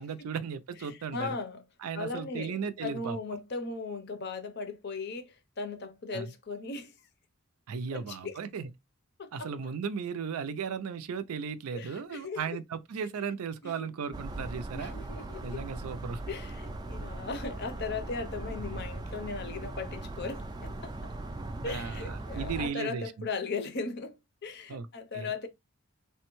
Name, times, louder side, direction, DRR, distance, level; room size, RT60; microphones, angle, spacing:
voice 1, 0.0-1.4 1.8-3.2 6.1-6.3 7.7-8.7 9.3-14.9 15.4-16.2 21.6-23.3 24.7-24.9 25.1-25.3, right 6 dB, 90° right, 0.4 m, -36 dB
voice 2, 0.8-1.6 1.9-6.9 7.9-8.4 9.2-9.7 11.7-12.6 13.6-13.9 14.7-15.6 16.3-21.1 21.6-25.5, left 4 dB, 50° left, 0.6 m, -38 dB
sound 1, 14.1-22.7, right 2 dB, 20° right, 0.3 m, -39 dB
3.3 x 2.2 x 3.0 m
head